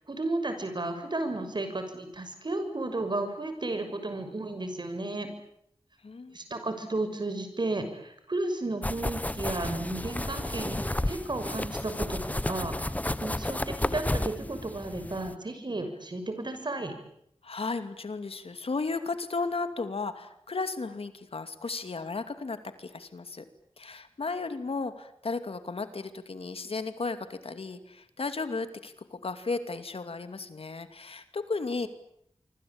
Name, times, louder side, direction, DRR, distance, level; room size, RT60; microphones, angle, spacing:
voice 1, 0.1-5.3 6.3-12.9 13.2-16.9, right 2 dB, 50° right, 8 dB, 6.5 m, -33 dB
voice 2, 6.0-6.4 17.4-23.4 23.8-31.9, left 3 dB, 75° left, 9 dB, 2.6 m, -34 dB
sound 1, 8.8-15.3, left 1 dB, 15° left, 1.1 m, -32 dB
26.0 x 25.5 x 8.8 m, 0.74 s
wide cardioid pair, 75°, 10 cm